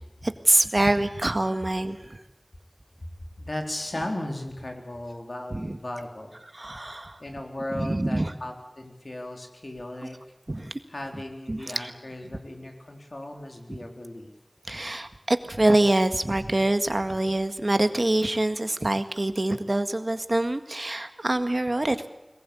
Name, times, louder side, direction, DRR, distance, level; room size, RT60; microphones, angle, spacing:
voice 1, 0.5-2.2 5.5-5.8 6.5-7.2 7.7-8.3 10.5-10.8 11.5-11.9 14.7-22.1, right 1 dB, 55° right, 9 dB, 1.8 m, -25 dB
voice 2, 3.4-6.4 7.2-10.2 10.9-14.3, left 1 dB, 75° left, 3 dB, 4.0 m, -36 dB
21.5 x 19.5 x 8.6 m, 0.96 s
wide cardioid pair, 40°, 0 cm